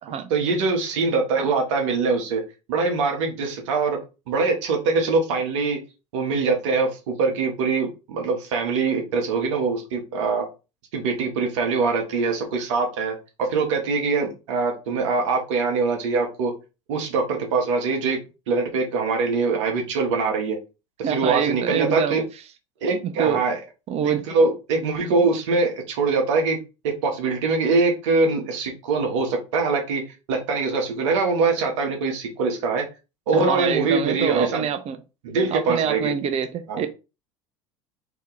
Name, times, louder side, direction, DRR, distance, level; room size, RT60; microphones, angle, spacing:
voice 1, 0.3-2.4 2.7-4.0 4.3-5.8 6.1-10.4 10.9-16.5 16.9-18.2 18.5-20.6 21.0-22.2 22.8-23.6 24.0-26.6 27.0-32.8 33.3-34.7 35.2-36.1 36.7-36.8, right 4 dB, 70° right, 1.1 m, -23 dB
voice 2, 21.0-22.2 23.0-23.4 23.9-24.2 33.3-35.0 35.5-36.9, right 8 dB, 40° right, 0.7 m, -25 dB
3.0 x 2.7 x 3.8 m
hypercardioid pair, 75°, 16 cm